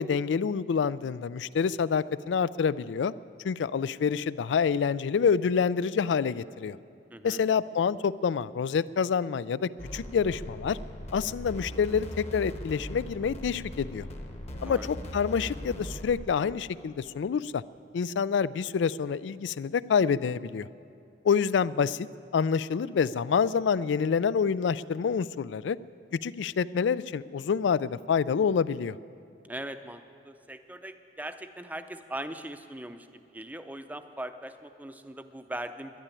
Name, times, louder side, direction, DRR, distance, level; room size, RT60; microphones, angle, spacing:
voice 1, 0.0-3.1 3.4-6.8 7.2-10.8 11.1-14.1 14.6-17.6 17.9-20.7 21.2-22.1 22.3-25.8 26.1-29.0, left 6 dB, 85° left, 18 dB, 0.3 m, -27 dB
voice 2, 7.1-7.5 14.6-14.9 29.5-36.0, right 1 dB, 10° right, 9 dB, 0.6 m, -40 dB
sound 1, 9.8-16.2, equal, 35° left, 1.1 m, -40 dB
12.0 x 11.0 x 9.8 m, 2.5 s
head